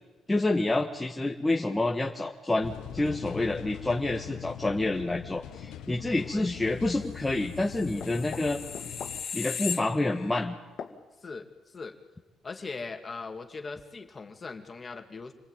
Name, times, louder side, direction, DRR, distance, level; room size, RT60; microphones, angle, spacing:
voice 1, 0.3-8.6 9.3-10.6, left 2 dB, 15° left, 1 dB, 1.6 m, -28 dB
sound 1, 2.6-9.2, left 11 dB, 90° left, 1.2 m, -42 dB
voice 2, 6.2-6.5 11.2-12.0 12.4-15.3, left 4 dB, 35° left, 5 dB, 2.7 m, -40 dB
sound 2, 7.5-10.4 10.8-10.9, left 7 dB, 60° left, 2.3 m, -37 dB
28.0 x 20.0 x 9.3 m, 1.1 s
cardioid pair, 90°, 0 cm